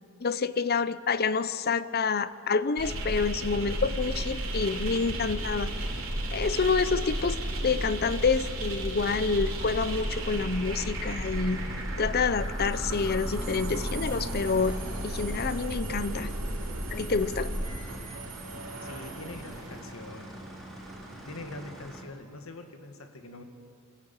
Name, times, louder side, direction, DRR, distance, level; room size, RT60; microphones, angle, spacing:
voice 1, 0.2-5.7 6.3-14.8 15.0-16.3 16.9-17.5, left 4 dB, 50° left, 15 dB, 0.7 m, -28 dB
sound 1, 2.8-21.6, right 1 dB, 80° right, 3.8 m, -34 dB
sound 2, 8.9-22.0, equal, ahead, 3.6 m, -44 dB
voice 2, 18.8-20.4 21.2-23.4, left 2 dB, 85° left, 5 dB, 2.2 m, -43 dB
27.5 x 14.0 x 8.9 m, 2.7 s
head